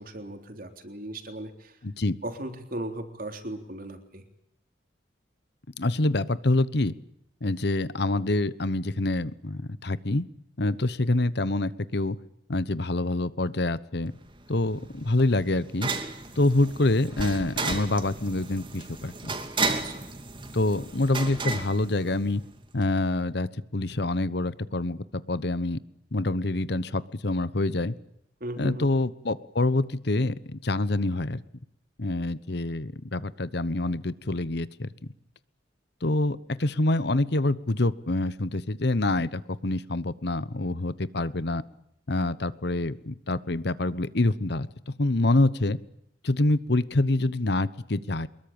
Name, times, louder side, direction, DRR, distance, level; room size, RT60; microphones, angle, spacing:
voice 1, 0.0-1.8 2.2-4.2 19.7-20.1 28.4-28.9, right 1 dB, 50° right, 6 dB, 3.6 m, -37 dB
voice 2, 1.8-2.2 5.8-6.9 7.4-10.3 10.6-12.2 12.5-14.1 14.5-15.9 16.4-19.4 20.5-22.4 22.7-25.8 26.1-27.9 28.6-31.4 32.0-34.9 36.0-41.6 42.1-45.8 46.2-48.3, left 2 dB, 60° left, 16 dB, 1.1 m, -26 dB
sound 1, 14.2-22.6, right 3 dB, 25° right, 2.6 m, -34 dB
24.0 x 22.0 x 8.9 m, 0.76 s
head